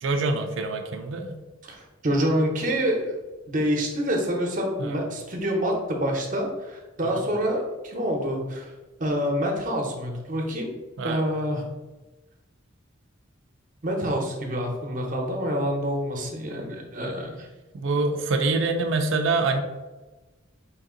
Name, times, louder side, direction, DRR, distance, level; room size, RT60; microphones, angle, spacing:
voice 1, 0.0-1.4 4.8-5.0 7.1-7.2 11.0-11.2 17.7-19.6, right 3 dB, 65° right, 5 dB, 0.4 m, -25 dB
voice 2, 1.6-3.1 3.5-8.7 9.0-10.7 11.0-11.6 13.8-17.5, equal, 40° right, 1 dB, 0.8 m, -27 dB
4.6 x 2.7 x 3.7 m, 1.2 s
head